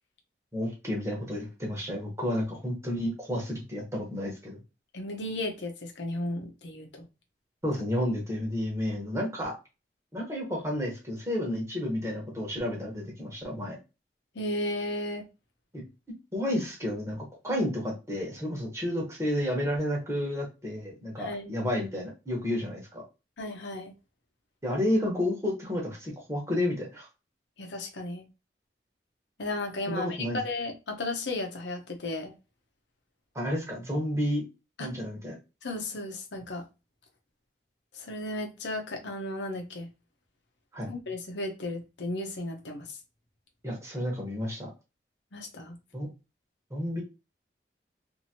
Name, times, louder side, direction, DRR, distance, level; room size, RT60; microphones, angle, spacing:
voice 1, 0.5-4.6 7.6-9.5 10.1-13.8 15.7-15.8 16.3-23.0 24.6-27.1 29.9-30.4 33.3-34.4 34.8-35.4 40.7-40.9 43.6-44.7 45.9-46.1 46.7-47.0, left 1 dB, 15° right, 1.0 m, -31 dB
voice 2, 4.9-7.0 14.4-15.2 21.2-21.5 23.4-23.9 27.6-28.2 29.4-32.3 34.8-34.9 35.6-36.6 37.9-39.9 40.9-42.9 45.3-45.8, left 2 dB, 90° left, 0.7 m, -34 dB
2.8 x 2.6 x 2.8 m
head